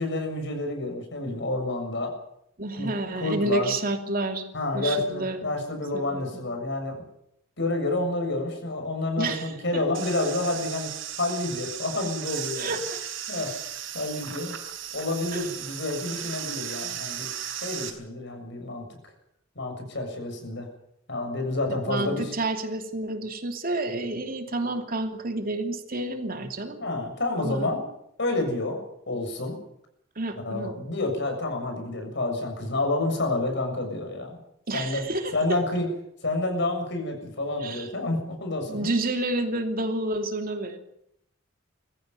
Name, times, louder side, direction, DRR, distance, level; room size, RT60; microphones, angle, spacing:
voice 1, 0.0-2.1 2.7-2.9 3.2-3.7 4.5-7.0 7.6-10.9 11.2-12.7 13.3-13.5 13.9-14.5 14.9-17.3 17.6-18.9 19.6-20.7 21.1-22.3 26.8-27.8 28.2-28.8 29.1-29.6 30.4-34.4 34.7-35.0 35.3-35.9 36.2-38.9, left 2 dB, 65° left, 4 dB, 7.0 m, -29 dB
voice 2, 2.6-4.4 4.7-5.4 5.9-6.4 9.2-9.8 12.6-13.0 15.3-15.5 21.7-26.8 27.4-27.7 30.2-30.7 34.7-35.6 37.6-37.9 38.6-40.8, right 2 dB, 50° right, 5 dB, 2.8 m, -30 dB
sound 1, 9.9-17.9, right 9 dB, 75° right, 4.3 m, -36 dB
22.5 x 15.0 x 9.5 m, 0.75 s
head